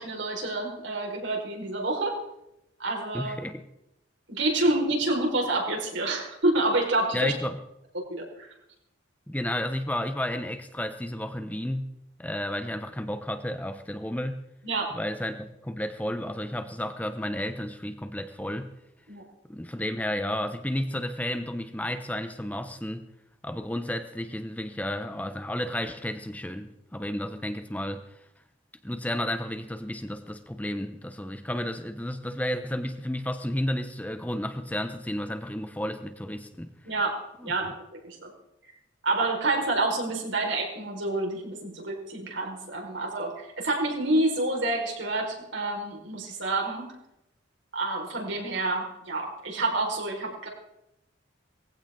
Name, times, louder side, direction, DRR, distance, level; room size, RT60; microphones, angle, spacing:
voice 1, 0.0-2.2 2.8-3.3 4.3-7.3 8.1-8.5 14.6-14.9 19.1-19.2 36.8-37.1 37.4-37.7 38.0-38.3 39.0-46.9 47.7-50.5, right 2 dB, 75° right, 0 dB, 5.1 m, -28 dB
voice 2, 3.1-3.6 7.1-7.6 9.3-11.9 12.2-14.4 14.9-18.7 19.5-23.1 23.4-28.2 28.8-36.7 37.4-37.5, left 1 dB, 10° left, 8 dB, 0.9 m, -32 dB
20.0 x 16.0 x 3.9 m, 0.84 s
head